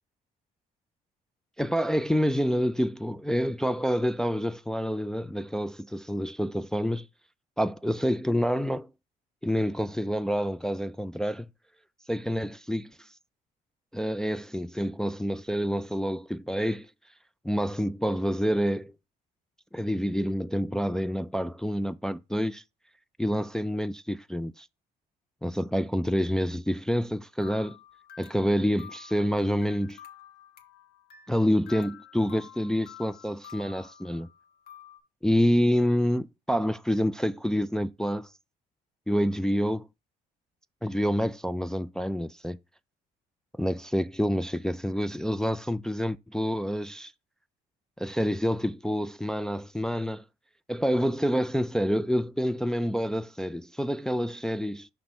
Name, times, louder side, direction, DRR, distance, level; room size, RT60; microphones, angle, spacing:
voice 1, 1.6-7.1 7.6-8.9 9.4-11.5 12.1-12.9 13.9-16.9 17.4-18.9 19.7-22.6 23.2-24.7 25.4-27.8 28.2-30.0 31.3-34.3 35.2-38.3 39.1-39.9 40.8-42.6 43.6-47.1 48.0-50.2 50.7-54.9, equal, 5° left, 0.3 m, -27 dB
sound 1, 27.4-35.0, left 9 dB, 65° left, 1.5 m, -50 dB
5.9 x 3.4 x 5.3 m
cardioid pair, 110°, 17 cm